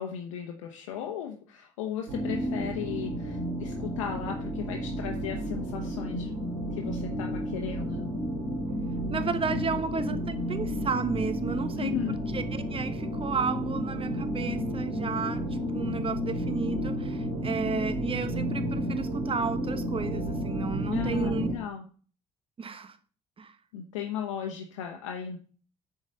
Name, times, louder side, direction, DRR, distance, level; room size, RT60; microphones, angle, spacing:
voice 1, 0.0-6.3 6.7-8.1 9.5-10.1 11.8-12.2 20.9-21.8 23.7-25.4, left 8 dB, 90° left, 1.0 m, -36 dB
sound 1, 2.1-21.5, equal, 90° right, 3.1 m, -32 dB
voice 2, 9.1-21.5 22.6-23.0 23.4-23.5, right 5 dB, 35° right, 1.2 m, -33 dB
7.2 x 4.9 x 6.6 m
hypercardioid pair, 65°, 16 cm